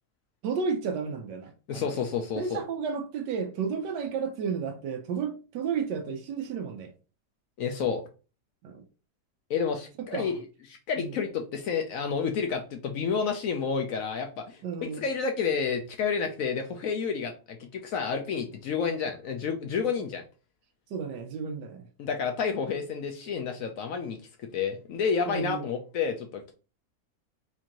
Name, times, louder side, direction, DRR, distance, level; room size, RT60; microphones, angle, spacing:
voice 1, 0.4-2.0 2.4-6.9 8.6-8.8 10.1-10.4 11.0-11.1 14.6-15.0 20.9-21.8 25.3-25.6, right 6 dB, 85° right, 1.3 m, -32 dB
voice 2, 1.7-2.6 7.6-8.0 9.5-10.4 10.7-20.2 22.0-26.5, left 6 dB, 70° left, 0.8 m, -30 dB
4.4 x 2.5 x 2.8 m
omnidirectional pair, 1.8 m